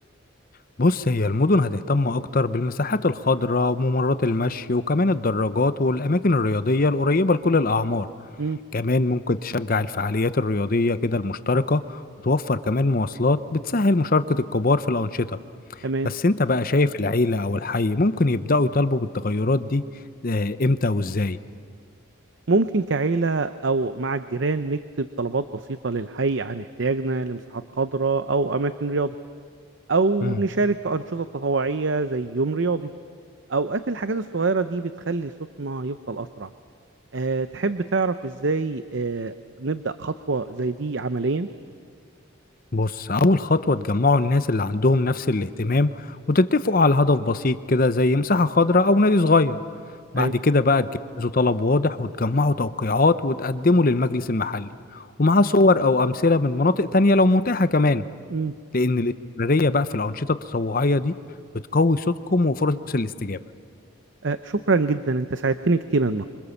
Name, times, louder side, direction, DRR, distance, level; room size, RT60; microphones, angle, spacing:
voice 1, 0.8-8.1 8.7-15.4 16.0-19.8 20.2-21.4 30.2-30.4 42.7-49.6 50.1-50.9 51.2-58.0 58.7-61.1 61.7-63.4, left 2 dB, 45° left, 12 dB, 0.8 m, -21 dB
voice 2, 22.5-29.2 29.9-32.9 33.5-35.3 35.6-36.5 37.1-41.5 50.1-50.3 58.3-58.5 64.2-66.2, right 3 dB, 60° right, 11 dB, 0.7 m, -25 dB
26.5 x 25.0 x 7.2 m, 2.2 s
head